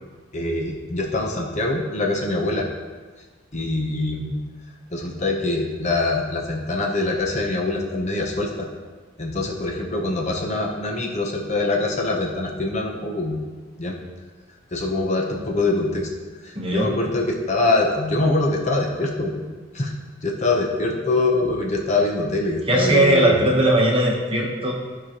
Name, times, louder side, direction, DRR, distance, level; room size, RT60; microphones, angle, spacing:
voice 1, 0.3-2.7 3.5-4.4 4.9-8.7 9.2-13.4 13.8-14.0 14.7-16.1 16.4-19.4 19.7-19.9 20.2-23.6, left 2 dB, 35° left, 0 dB, 0.8 m, -24 dB
voice 2, 16.5-16.9 22.7-24.7, right 1 dB, 25° right, -1 dB, 1.1 m, -19 dB
12.5 x 4.9 x 3.0 m, 1.4 s
head